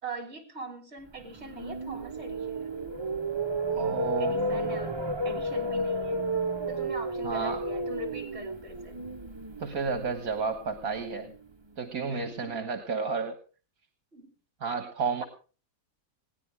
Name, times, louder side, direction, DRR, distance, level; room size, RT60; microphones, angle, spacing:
voice 1, 0.0-2.9 4.2-6.3 6.7-9.0 12.1-12.6 14.1-14.3, right 2 dB, 45° right, 5 dB, 3.7 m, -42 dB
sound 1, 1.2-11.3, right 1 dB, 25° right, 0.6 m, -32 dB
voice 2, 3.7-4.4 7.2-7.6 9.6-11.3 11.8-13.4 14.6-15.2, right 5 dB, 70° right, 7 dB, 2.0 m, -31 dB
21.0 x 17.0 x 3.4 m, 0.36 s
omnidirectional pair, 1.6 m